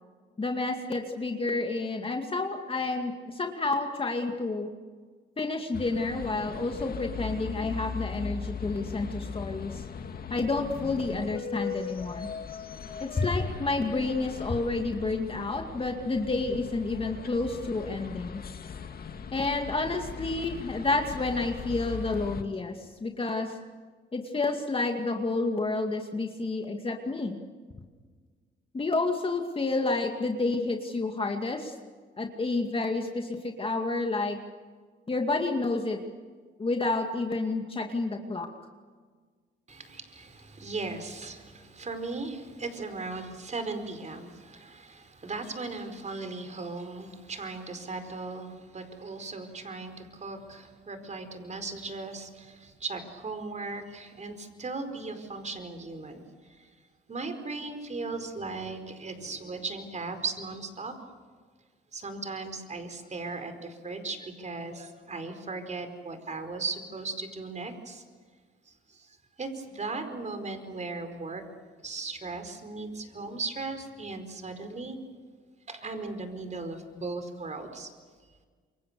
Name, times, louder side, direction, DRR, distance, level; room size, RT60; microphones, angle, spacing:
voice 1, 0.4-4.7 5.4-9.8 10.3-12.3 13.0-18.4 19.3-23.6 24.1-27.4 28.7-31.7 32.2-34.4 35.1-36.0 36.6-38.5, left 3 dB, 25° left, 3 dB, 2.3 m, -30 dB
sound 1, 5.7-22.4, left 6 dB, 50° left, 1.9 m, -39 dB
voice 2, 39.7-56.7 57.1-60.9 61.9-68.0 68.6-71.4 71.8-75.0 75.7-77.9, right 3 dB, 35° right, 8 dB, 4.8 m, -37 dB
28.0 x 24.0 x 6.9 m, 1.5 s
cardioid pair, 90°, 20 cm